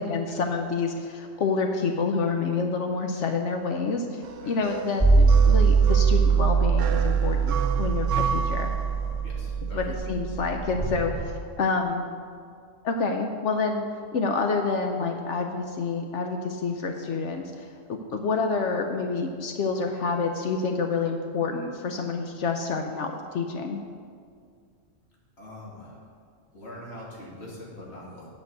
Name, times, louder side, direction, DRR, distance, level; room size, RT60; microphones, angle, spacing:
voice 1, 0.0-8.7 9.7-11.3 11.6-12.1 12.8-13.8 14.1-23.8, left 4 dB, 75° left, 4 dB, 1.0 m, -28 dB
sound 1, 4.2-9.4, right 7 dB, 85° right, 1.0 m, -33 dB
sound 2, 5.0-11.2, right 5 dB, 15° right, 1.4 m, -22 dB
voice 2, 9.2-9.8 25.4-26.0 26.5-28.3, left 1 dB, 60° left, -5 dB, 2.6 m, -43 dB
9.1 x 5.3 x 7.9 m, 2.1 s
omnidirectional pair, 1.3 m